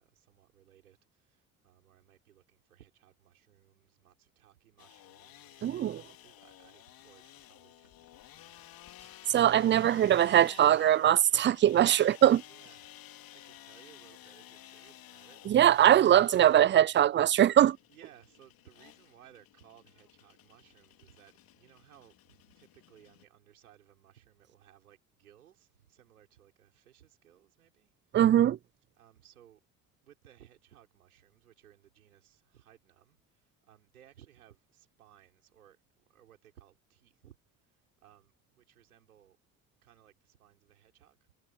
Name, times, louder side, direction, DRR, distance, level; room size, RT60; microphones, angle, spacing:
voice 1, 0.0-8.7 12.5-15.8 17.9-28.2 28.9-29.6 30.0-39.4 39.8-41.4, right 11 dB, 85° right, 5.4 m, -61 dB
sound 1, 4.8-23.2, left 13 dB, 55° left, 2.7 m, -54 dB
voice 2, 5.6-6.0 9.3-12.4 15.5-17.8 28.1-28.6, right 11 dB, 30° right, 0.4 m, -22 dB
hypercardioid pair, 60°, 42 cm